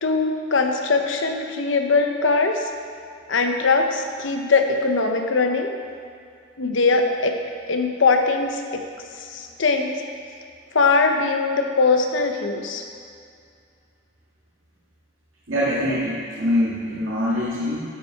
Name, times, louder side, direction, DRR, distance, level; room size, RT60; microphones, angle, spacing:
voice 1, 0.0-2.6 3.3-5.7 6.6-7.3 7.7-8.8 9.3-9.9 10.7-12.8, left 4 dB, 75° left, 4 dB, 0.8 m, -21 dB
voice 2, 15.5-17.8, left 1 dB, 85° right, -8 dB, 1.7 m, -23 dB
12.5 x 5.8 x 4.6 m, 2.3 s
head